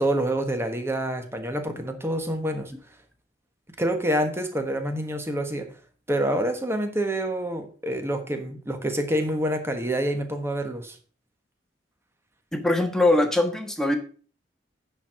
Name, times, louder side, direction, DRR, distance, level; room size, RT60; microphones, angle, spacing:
voice 1, 0.0-2.7 3.8-5.7 6.1-11.0, right 1 dB, 15° right, 6 dB, 1.3 m, -27 dB
voice 2, 12.5-14.0, left 2 dB, 5° left, 4 dB, 1.3 m, -22 dB
9.9 x 4.6 x 6.3 m, 0.41 s
head